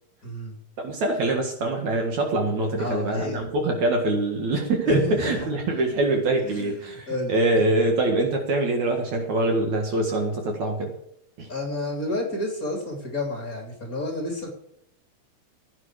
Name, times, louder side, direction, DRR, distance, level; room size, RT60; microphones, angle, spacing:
voice 1, 0.2-0.5 2.8-3.4 4.8-5.5 6.4-7.7 11.5-14.5, left 1 dB, 25° left, 1 dB, 3.1 m, -30 dB
voice 2, 0.8-10.9 11.4-11.5, right 2 dB, 55° right, 3 dB, 2.8 m, -24 dB
16.0 x 9.8 x 4.9 m, 0.74 s
omnidirectional pair, 4.3 m